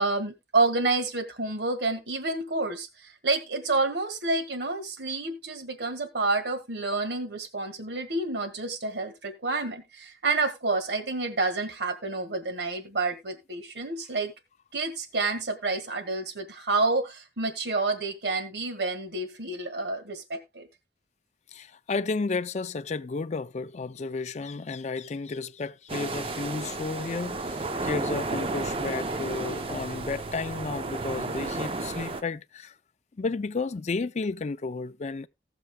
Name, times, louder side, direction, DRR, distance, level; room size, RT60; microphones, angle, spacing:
voice 1, 0.0-14.3 14.7-20.7, right 3 dB, 75° right, 1.6 m, -29 dB
voice 2, 21.5-32.7 33.2-35.3, left 4 dB, 40° left, 0.4 m, -32 dB
sound 1, 25.9-32.2, right 3 dB, 30° right, 0.6 m, -32 dB
18.5 x 6.8 x 2.2 m
head